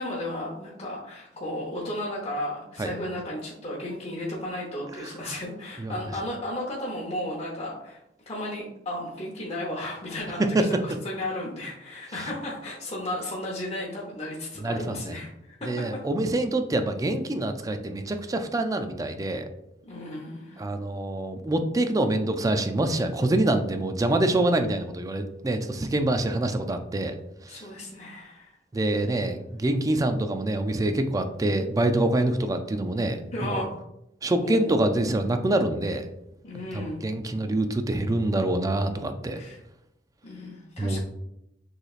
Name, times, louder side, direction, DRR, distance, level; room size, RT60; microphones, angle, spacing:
voice 1, 0.0-8.0 8.3-10.4 10.8-15.8 19.8-20.6 27.5-28.5 29.1-29.2 33.3-33.7 34.4-34.6 36.4-37.0 39.3-39.6 40.2-41.0, left 1 dB, 35° left, -5 dB, 0.8 m, -34 dB
voice 2, 5.0-5.4 5.8-5.9 10.5-10.7 14.6-15.1 15.6-19.5 20.6-27.1 27.5-27.6 28.7-33.6 34.2-36.1 36.7-39.4 40.8-41.0, right 1 dB, 20° right, 7 dB, 0.3 m, -26 dB
6.4 x 3.2 x 2.4 m, 0.84 s
head